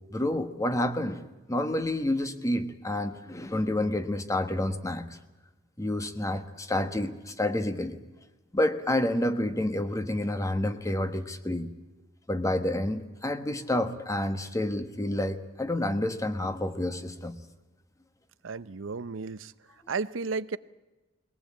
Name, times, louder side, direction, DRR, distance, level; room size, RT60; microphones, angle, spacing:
voice 1, 0.1-1.2 1.5-5.1 5.8-8.0 8.5-11.7 12.3-17.4, left 1 dB, 15° left, 10 dB, 1.2 m, -29 dB
voice 2, 18.4-19.5 19.9-20.6, right 4 dB, 85° right, 15 dB, 0.7 m, -33 dB
21.5 x 18.0 x 8.7 m, 1.1 s
head